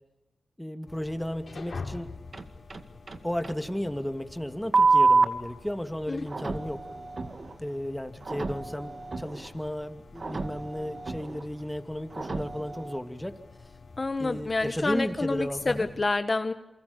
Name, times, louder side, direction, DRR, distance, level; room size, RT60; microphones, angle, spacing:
voice 1, 0.6-2.1 3.2-6.8 7.6-13.4 14.2-15.9, equal, 5° left, 8 dB, 2.5 m, -34 dB
sound 1, 0.9-16.0, left 4 dB, 70° left, 3.5 m, -47 dB
sound 2, 2.3-3.2 3.4-3.6 4.7-5.2 6.3-7.6 8.2-9.5 10.2-11.4 12.1-13.0, right 4 dB, 55° right, 2.1 m, -27 dB
voice 2, 14.0-16.5, left 3 dB, 45° left, 10 dB, 1.3 m, -28 dB
27.5 x 25.0 x 7.1 m, 0.97 s
cardioid pair, 40°, 0 cm